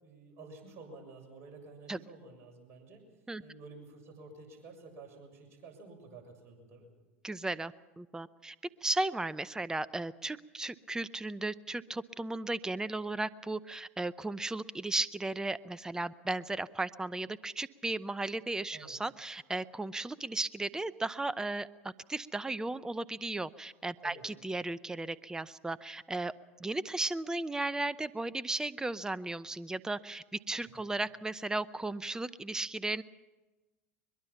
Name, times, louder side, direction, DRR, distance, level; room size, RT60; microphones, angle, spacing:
voice 1, 0.0-3.0 3.4-6.9 18.7-19.0 24.0-24.2, right 3 dB, 40° right, 2 dB, 7.2 m, -51 dB
voice 2, 7.2-8.5 8.8-21.7 22.1-26.3 26.6-33.0, right 2 dB, 10° right, 18 dB, 0.6 m, -35 dB
22.5 x 22.0 x 5.8 m, 1.1 s
hypercardioid pair, 80°, 7 cm